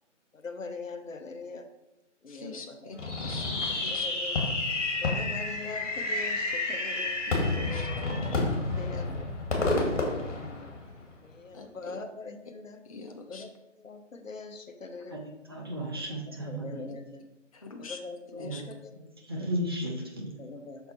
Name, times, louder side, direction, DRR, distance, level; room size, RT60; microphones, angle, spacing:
voice 1, 0.3-1.7 2.2-2.9 3.9-4.5 5.0-7.2 8.3-9.3 9.7-10.7 11.2-12.8 13.3-13.5 13.8-15.2 15.9-16.0 16.4-17.2 17.8-18.9 20.4-20.9, left 4 dB, 85° left, 8 dB, 1.0 m, -42 dB
voice 2, 2.3-4.1 7.3-7.9 8.9-9.0 11.5-11.9 12.8-13.4 17.5-18.0 18.4-18.6, left 4 dB, 30° left, 3 dB, 0.5 m, -44 dB
Fireworks, 3.0-11.1, left 2 dB, 65° left, 2.1 m, -30 dB
voice 3, 15.5-16.8 18.3-18.6 19.2-20.3, equal, 20° right, -1 dB, 0.6 m, -34 dB
5.9 x 4.5 x 4.4 m, 0.92 s
figure-of-eight pair, 150°, 38 cm